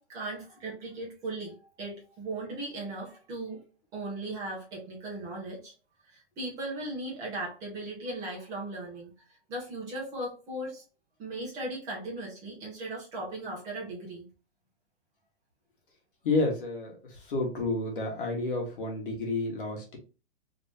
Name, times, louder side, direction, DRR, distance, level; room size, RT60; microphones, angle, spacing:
voice 1, 0.0-3.6 3.9-5.7 6.0-9.1 9.5-10.8 11.2-14.3, right 2 dB, 10° right, -4 dB, 0.8 m, -37 dB
voice 2, 16.2-16.9 17.3-20.0, left 2 dB, 50° left, 0 dB, 1.4 m, -30 dB
3.2 x 2.8 x 3.2 m, 0.33 s
hypercardioid pair, 175°, 34 cm